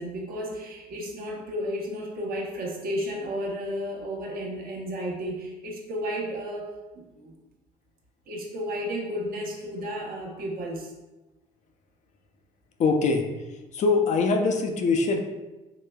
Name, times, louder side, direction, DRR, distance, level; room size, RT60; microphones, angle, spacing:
voice 1, 0.0-7.3 8.3-10.9, equal, 60° right, -1 dB, 0.9 m, -33 dB
voice 2, 12.8-13.2 13.7-15.2, left 4 dB, 45° left, 4 dB, 0.5 m, -22 dB
4.8 x 3.2 x 2.2 m, 1.1 s
cardioid pair, 110°, 17 cm